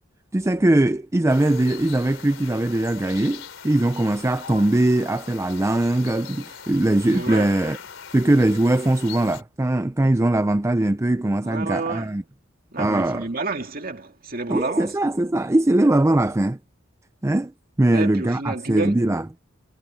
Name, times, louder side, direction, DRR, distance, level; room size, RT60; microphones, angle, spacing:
voice 1, 0.3-7.8 8.1-12.2 12.8-13.2 14.5-16.6 17.2-17.5 17.8-19.2, right 1 dB, 15° right, 0.5 m, -21 dB
sound 1, 1.3-9.4, left 7 dB, 90° left, 3.6 m, -41 dB
voice 2, 7.1-7.5 11.4-12.1 12.7-15.0 17.9-19.1, right 3 dB, 50° right, 2.3 m, -30 dB
head